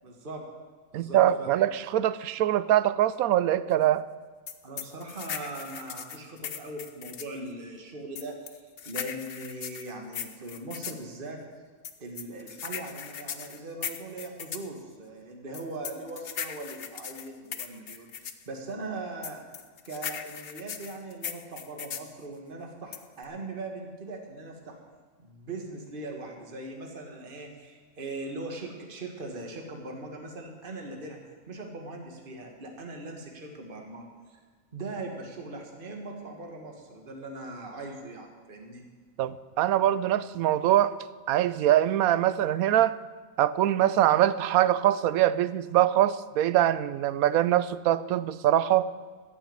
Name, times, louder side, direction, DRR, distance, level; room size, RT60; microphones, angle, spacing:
voice 1, 0.0-0.4 0.9-1.5 4.6-11.4 12.0-19.6 19.9-24.8 25.2-34.4 34.7-38.8, right 2 dB, 40° right, 2 dB, 1.8 m, -40 dB
voice 2, 0.9-4.0 39.2-40.9 41.3-43.0 43.4-48.9, right 12 dB, 80° right, 16 dB, 1.0 m, -23 dB
sound 1, 4.5-7.4 8.2-11.0 11.8-14.7 15.5-18.4 19.2-22.1 22.9-23.2, left 8 dB, 50° left, 0.9 m, -38 dB
14.0 x 7.3 x 8.8 m, 1.5 s
omnidirectional pair, 1.5 m